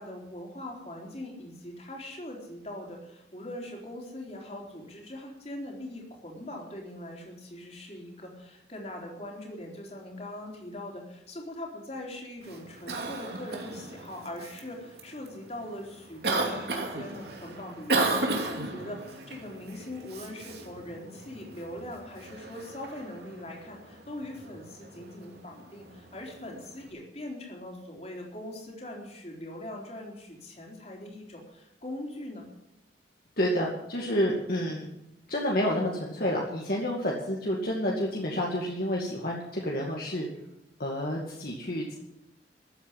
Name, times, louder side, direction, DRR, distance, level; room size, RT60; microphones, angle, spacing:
voice 1, 0.0-32.5, left 1 dB, 35° left, 0 dB, 3.9 m, -41 dB
Cough, 12.4-26.9, right 2 dB, 60° right, 2.6 m, -35 dB
voice 2, 33.4-34.8 35.3-40.3 40.8-41.9, equal, 55° left, -2 dB, 2.3 m, -29 dB
14.0 x 8.7 x 9.9 m, 0.85 s
head